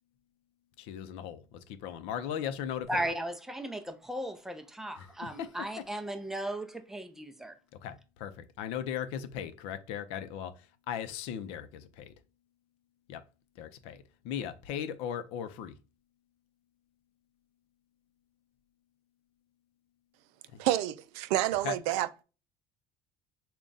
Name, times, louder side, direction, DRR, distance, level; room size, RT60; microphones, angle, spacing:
voice 1, 0.8-3.1 5.0-5.8 7.8-12.1 13.1-13.2 13.6-15.8 20.5-20.6 21.6-21.8, left 9 dB, 65° left, 0.6 m, -38 dB
voice 2, 2.9-7.5, right 1 dB, 5° right, 0.5 m, -36 dB
voice 3, 20.6-22.2, right 14 dB, 75° right, 0.4 m, -29 dB
3.6 x 2.3 x 3.9 m
cardioid pair, 150°, 11 cm